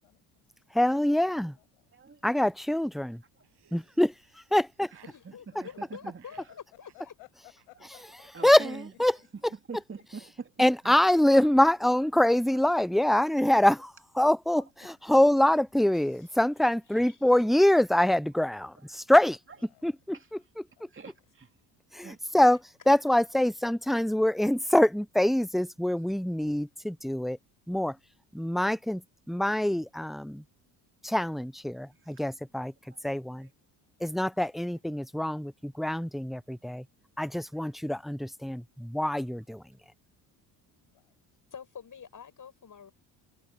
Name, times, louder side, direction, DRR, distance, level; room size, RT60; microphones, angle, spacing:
voice 1, 0.0-1.8 5.3-5.6 6.9-8.0 8.4-8.5 9.2-10.0 14.8-14.9 19.5-20.0 20.8-21.2 40.9-41.2, left 36 dB, 80° left, 6.6 m, -58 dB
voice 2, 0.7-1.6 2.2-3.2 3.7-4.1 4.5-4.9 8.4-8.7 9.0-9.1 10.6-19.4 19.8-20.6 21.9-27.4 27.7-28.0 28.3-29.0 29.3-30.4 31.0-32.7 33.0-33.5 34.0-36.8 37.2-39.6, left 1 dB, ahead, 0.5 m, -25 dB
voice 3, 1.9-2.5 3.4-3.5 4.9-6.6 7.8-7.9 8.3-9.2 9.5-11.0 11.3-11.6 12.0-12.1 14.5-14.9 17.0-17.5 18.8-18.9 19.5-19.7 20.1-20.3 20.9-21.5 22.0-22.2 32.6-33.0 33.4-33.5, right 5 dB, 25° right, 2.8 m, -46 dB
Laughter, 3.4-5.2 5.6-5.8 6.1-6.5 6.8-7.3 7.6-7.7 8.0-8.1 8.4-8.5 8.7-8.9 9.1-9.4, right 11 dB, 55° right, 7.8 m, -62 dB
voice 4, 5.0-7.1 16.0-16.3 17.1-17.2 22.9-23.0 41.5-42.9, left 7 dB, 40° left, 5.2 m, -47 dB
hypercardioid pair, 65°, 48 cm